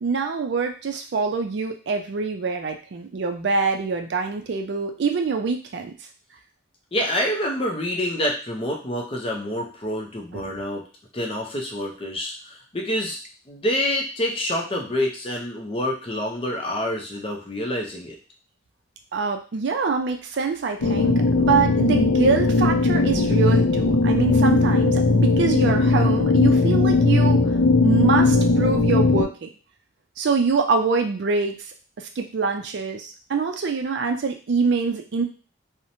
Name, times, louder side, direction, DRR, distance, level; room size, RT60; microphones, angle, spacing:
voice 1, 0.0-5.9 10.3-10.6 19.1-27.4 27.8-29.5 30.2-31.6 32.0-35.2, right 4 dB, 55° right, 4 dB, 0.4 m, -24 dB
voice 2, 6.9-10.8 11.1-13.2 13.5-18.2, left 1 dB, 25° left, 0 dB, 0.5 m, -27 dB
sound 1, 20.8-29.2, left 3 dB, 85° left, 0.4 m, -18 dB
2.9 x 2.0 x 2.6 m, 0.35 s
head